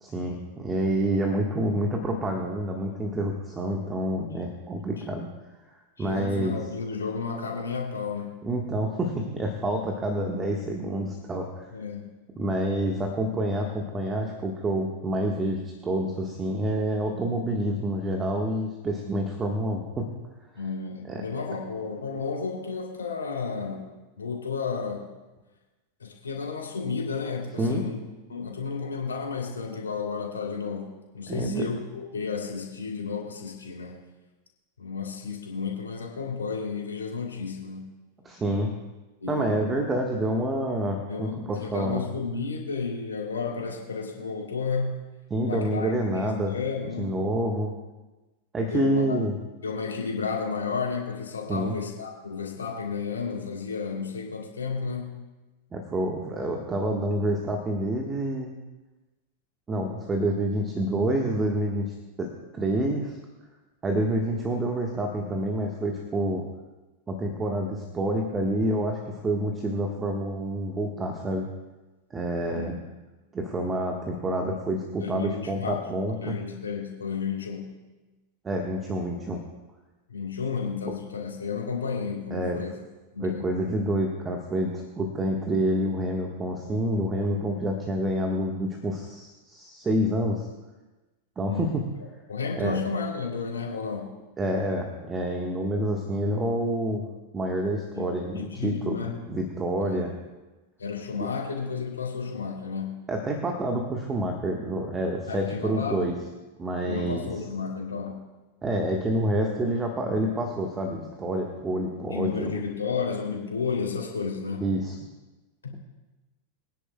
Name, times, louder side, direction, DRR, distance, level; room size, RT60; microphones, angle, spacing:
voice 1, 0.0-5.3 6.0-6.6 8.4-11.7 12.4-20.1 21.1-21.2 27.6-27.8 31.3-31.6 38.2-38.7 39.3-42.0 45.3-46.5 47.0-47.7 48.5-49.3 51.5-51.8 55.7-58.5 59.7-63.2 63.8-66.4 67.1-71.5 72.1-72.8 73.3-76.4 78.4-79.4 82.3-82.6 83.2-90.5 91.4-91.9 92.6-92.8 94.4-97.1 97.3-99.0 99.3-100.1 101.2-101.3 103.1-106.2 106.6-107.3 108.6-112.6 114.6-115.0, right 1 dB, 20° right, 2 dB, 1.3 m, -28 dB
voice 2, 6.0-8.3 11.7-12.1 20.5-25.2 26.0-28.0 28.3-34.0 34.8-37.9 39.2-39.5 41.1-44.9 45.4-47.1 48.6-49.2 49.6-55.2 72.5-72.7 75.0-75.8 76.2-77.7 80.1-82.7 83.1-83.6 91.4-91.8 92.3-94.1 97.9-98.1 98.3-99.2 99.9-100.1 100.8-103.1 105.3-106.2 106.8-108.3 112.1-114.7 115.6-115.7, left 5 dB, 70° left, -1 dB, 2.7 m, -32 dB
23.5 x 10.0 x 2.2 m, 1.1 s
figure-of-eight pair, 90°, 0 cm